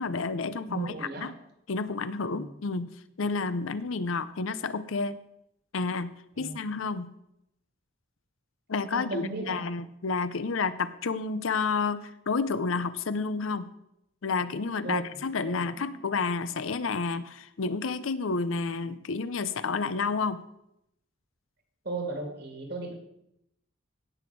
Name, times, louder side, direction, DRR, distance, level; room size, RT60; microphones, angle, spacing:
voice 1, 0.0-1.3 1.7-2.9 3.2-5.2 5.7-6.1 6.4-7.1 8.7-13.7 14.2-20.4, left 4 dB, 75° left, 14 dB, 0.6 m, -30 dB
voice 2, 0.7-1.3 2.3-2.5 6.4-6.5 8.9-9.6 14.8-15.0 15.4-15.9 21.9-22.9, right 2 dB, 50° right, 4 dB, 2.1 m, -36 dB
16.5 x 6.1 x 4.6 m, 0.81 s
head